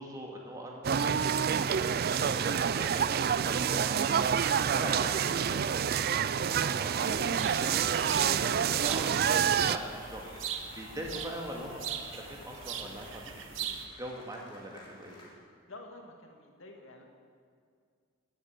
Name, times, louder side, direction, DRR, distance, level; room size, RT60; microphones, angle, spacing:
voice 1, 0.0-4.3 4.6-6.0 6.4-13.2 13.5-13.6 13.9-15.2, right 1 dB, 15° right, 0 dB, 2.1 m, -43 dB
sound 1, 0.8-9.8, right 7 dB, 50° right, 0.4 m, -28 dB
sound 2, 7.0-13.9, right 8 dB, 70° right, 1.0 m, -41 dB
sound 3, 7.4-15.3, left 1 dB, 25° left, 3.0 m, -52 dB
voice 2, 15.7-17.0, left 2 dB, 75° left, 2 dB, 2.1 m, -49 dB
15.0 x 8.1 x 8.3 m, 2.1 s
head